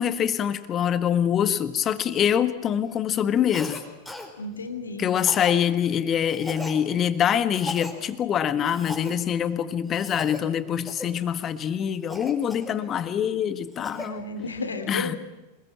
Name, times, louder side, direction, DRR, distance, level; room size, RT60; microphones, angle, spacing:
voice 1, 0.0-3.8 5.0-14.2 14.9-15.1, left 9 dB, 30° left, 13 dB, 1.5 m, -25 dB
Cough, 3.5-3.8 4.1-4.3 5.2-5.6 6.3-6.8 7.5-7.9 8.6-9.1 9.9-10.4 10.9-11.1 12.1-13.1 13.5-14.1, left 2 dB, 5° left, 4.4 m, -37 dB
voice 2, 4.4-5.1 14.0-15.2, left 3 dB, 75° left, 8 dB, 2.9 m, -33 dB
25.5 x 21.0 x 8.8 m, 1.1 s
figure-of-eight pair, 90°, 0 cm